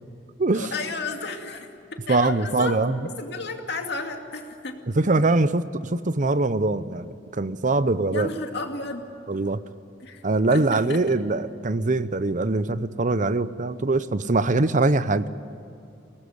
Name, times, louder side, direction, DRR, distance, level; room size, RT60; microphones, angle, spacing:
voice 1, 0.5-2.8 3.2-4.8 8.1-9.1 10.0-10.2 10.5-11.2, left 3 dB, 65° left, 3 dB, 2.5 m, -33 dB
voice 2, 2.1-3.0 5.0-8.3 9.3-9.6 10.2-15.3, right 2 dB, 45° right, 14 dB, 0.8 m, -23 dB
22.5 x 19.0 x 9.7 m, 2.6 s
head